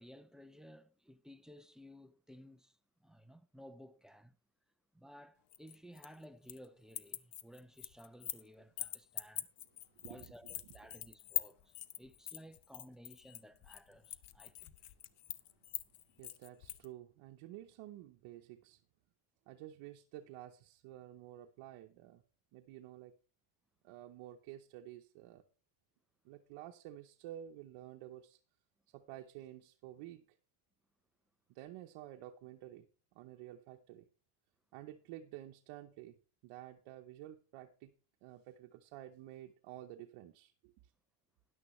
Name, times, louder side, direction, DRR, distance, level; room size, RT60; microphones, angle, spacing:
voice 1, 0.0-2.8 3.0-4.4 4.9-9.5 10.0-10.5 10.7-14.7, equal, ahead, 0.5 m, -56 dB
sound 1, 5.5-6.7 6.9-8.5 8.8-16.9, left 13 dB, 55° left, 0.9 m, -43 dB
voice 2, 9.9-10.7 16.2-18.8 19.5-22.2 22.5-23.1 23.8-25.4 26.2-28.4 28.9-30.2 31.5-32.9 33.1-34.0 34.7-37.9 38.2-40.7, right 13 dB, 80° right, 1.0 m, -51 dB
13.5 x 10.5 x 3.1 m
cardioid pair, 120°, 49 cm